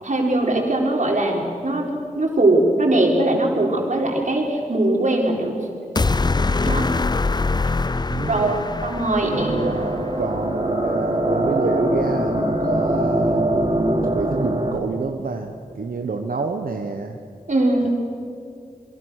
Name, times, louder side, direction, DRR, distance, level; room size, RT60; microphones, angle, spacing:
voice 1, 0.0-1.9 2.1-5.5 6.6-6.9 8.3-8.5 8.8-9.6 17.5-17.9, right 2 dB, 60° right, 0 dB, 4.5 m, -20 dB
sound 1, 5.9-10.2, left 3 dB, 30° left, 0.5 m, -23 dB
voice 2, 8.1-8.7 9.2-13.7 14.0-17.2 17.8-17.9, right 4 dB, 90° right, 4 dB, 1.2 m, -28 dB
sound 2, 9.3-14.7, right 1 dB, 35° right, 3.4 m, -22 dB
28.0 x 23.0 x 6.5 m, 2.4 s
wide cardioid pair, 70°, 14 cm